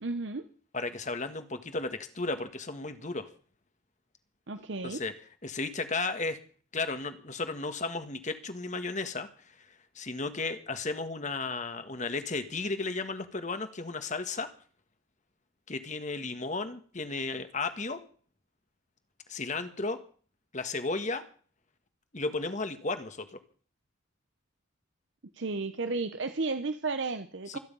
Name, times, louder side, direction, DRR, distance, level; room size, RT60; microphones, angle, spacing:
voice 1, 0.0-0.4 4.5-5.0 25.3-27.6, right 3 dB, 60° right, 9 dB, 0.9 m, -33 dB
voice 2, 0.7-3.3 4.8-5.1 5.4-6.4 6.7-9.5 9.9-14.5 15.7-18.0 19.3-20.0 20.5-21.2 22.1-23.4 27.5-27.6, left 3 dB, 35° left, 9 dB, 1.6 m, -34 dB
25.5 x 9.8 x 5.5 m, 0.44 s
head